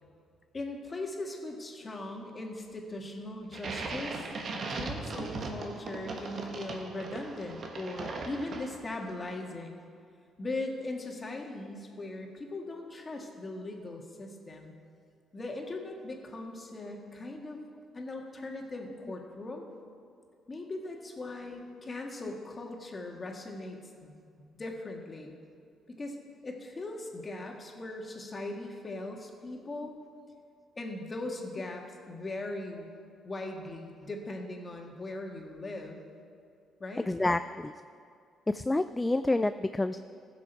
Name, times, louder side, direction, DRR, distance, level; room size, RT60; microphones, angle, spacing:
voice 1, 0.5-4.3 4.7-9.8 10.4-14.7 15.3-17.6 17.9-19.7 20.5-25.4 25.9-26.2 26.4-30.0 30.8-32.9 33.2-36.0 36.8-37.1, left 2 dB, 35° left, 1 dB, 1.8 m, -39 dB
sound 1, 3.5-9.0, right 3 dB, 55° right, 1.3 m, -38 dB
voice 2, 37.0-37.7 38.5-40.0, left 2 dB, 15° left, 11 dB, 0.3 m, -29 dB
15.5 x 6.2 x 4.6 m, 2.4 s
supercardioid pair, 60°, 0 cm